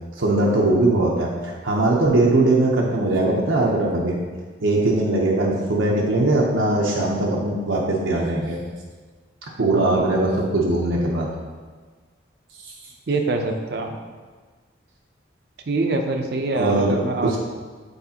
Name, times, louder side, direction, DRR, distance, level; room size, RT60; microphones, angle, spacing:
voice 1, 0.2-4.2 4.6-8.6 9.6-11.3 12.6-12.7 16.5-17.4, right 2 dB, 90° right, -3 dB, 0.7 m, -20 dB
voice 2, 9.7-10.2 13.1-14.0 15.7-17.4, right 3 dB, 55° right, 3 dB, 0.5 m, -25 dB
8.1 x 4.1 x 2.8 m, 1.4 s
head